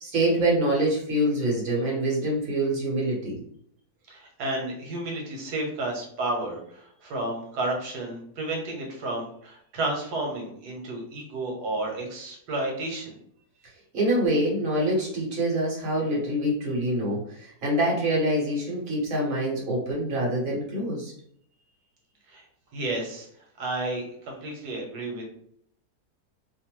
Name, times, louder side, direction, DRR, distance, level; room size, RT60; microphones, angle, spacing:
voice 1, 0.0-3.4 13.9-21.1, right 1 dB, 60° right, -4 dB, 1.4 m, -25 dB
voice 2, 4.1-13.1 22.3-22.4 22.7-23.3 23.6-25.2, right 2 dB, 85° right, 0 dB, 1.4 m, -32 dB
3.1 x 2.1 x 2.9 m, 0.66 s
omnidirectional pair, 1.7 m